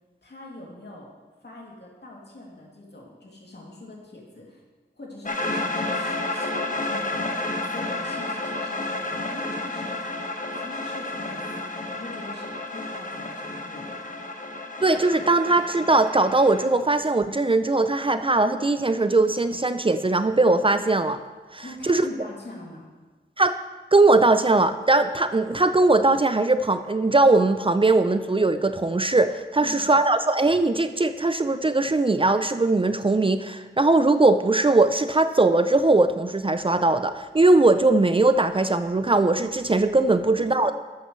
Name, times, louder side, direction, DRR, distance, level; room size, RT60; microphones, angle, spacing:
voice 1, 0.2-1.1 1.4-4.6 5.0-7.4 7.7-9.9 10.4-14.0 21.6-22.8 29.6-29.8 40.2-40.5, left 2 dB, 60° left, -3 dB, 2.6 m, -42 dB
sound 1, 5.3-16.7, left 2 dB, 40° left, 1.4 m, -31 dB
voice 2, 14.8-21.2 21.5-22.1 23.4-23.6 23.9-40.7, right 2 dB, 25° right, 10 dB, 0.5 m, -20 dB
12.0 x 8.1 x 3.2 m, 1.3 s
cardioid pair, 40°, 20 cm